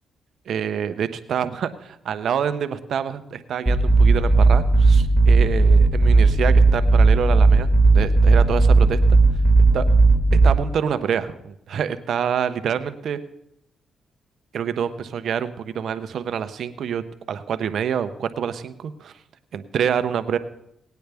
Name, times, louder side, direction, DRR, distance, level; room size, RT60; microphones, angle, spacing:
voice 1, 0.5-9.2 9.7-9.9 10.4-13.2 14.5-19.1 19.5-20.4, right 8 dB, 70° right, 11 dB, 0.7 m, -27 dB
sound 1, 3.7-10.5, right 3 dB, 15° right, 1.7 m, -15 dB
18.5 x 9.3 x 3.4 m, 0.79 s
cardioid pair, 70°, 0 cm